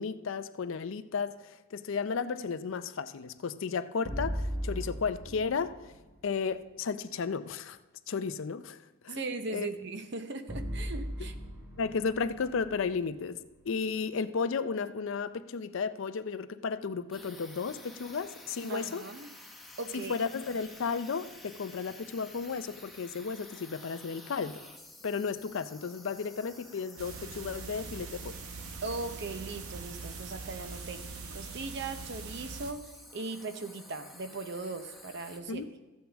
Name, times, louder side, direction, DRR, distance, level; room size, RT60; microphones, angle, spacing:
voice 1, 0.0-5.9 6.2-7.8 8.1-8.8 9.0-9.7 11.8-13.4 13.7-19.0 19.9-24.6 25.0-28.3 35.5-35.6, left 5 dB, 65° left, 12 dB, 0.4 m, -34 dB
sound 1, 4.1-6.2 10.5-13.7, equal, 20° right, 3.2 m, -38 dB
voice 2, 9.1-11.3 18.7-19.3 19.8-20.1 28.8-35.7, right 3 dB, 55° right, 9 dB, 0.7 m, -39 dB
sound 2, 17.1-35.4, left 2 dB, ahead, 0.8 m, -52 dB
sound 3, 27.0-32.7, right 4 dB, 85° right, 0.8 m, -43 dB
14.0 x 8.0 x 3.4 m, 1.1 s
head